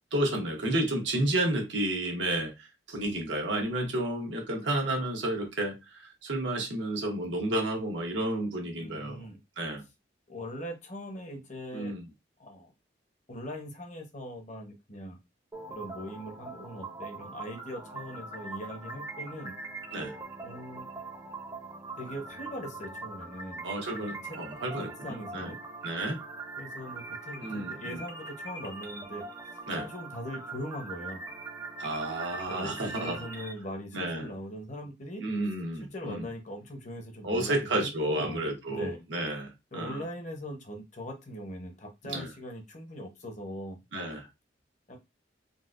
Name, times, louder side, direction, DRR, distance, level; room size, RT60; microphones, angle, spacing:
voice 1, 0.1-9.2 9.6-9.8 11.7-12.0 19.9-20.2 23.6-25.5 25.8-26.2 27.4-27.9 29.7-29.9 31.8-33.2 33.9-34.3 35.2-36.2 37.2-40.0 42.0-42.3 43.9-44.3, right 1 dB, 85° right, 1.1 m, -31 dB
voice 2, 8.7-9.4 10.3-11.9 12.4-12.7 13.3-15.2 15.7-19.5 20.4-20.9 22.0-23.7 24.0-24.4 24.8-25.6 26.6-29.2 29.5-31.3 32.5-35.2 35.7-39.0 39.7-43.8 44.9-45.0, equal, 40° left, 0.8 m, -41 dB
sound 1, 15.5-33.5, right 3 dB, 20° right, 0.6 m, -42 dB
4.0 x 2.2 x 2.4 m
head